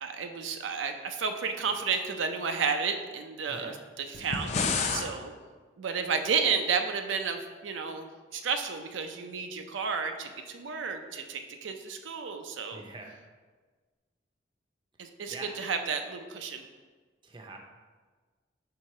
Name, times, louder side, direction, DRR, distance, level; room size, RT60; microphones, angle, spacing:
voice 1, 0.0-5.3 5.8-12.8 15.0-16.6, right 5 dB, 85° right, 6 dB, 0.5 m, -32 dB
voice 2, 3.5-3.8 12.7-13.2 15.3-15.6 17.2-17.6, right 2 dB, 25° right, 2 dB, 0.5 m, -44 dB
sound 1, 4.1-5.1, left 4 dB, 35° left, 0.4 m, -29 dB
4.8 x 3.7 x 5.3 m, 1.4 s
head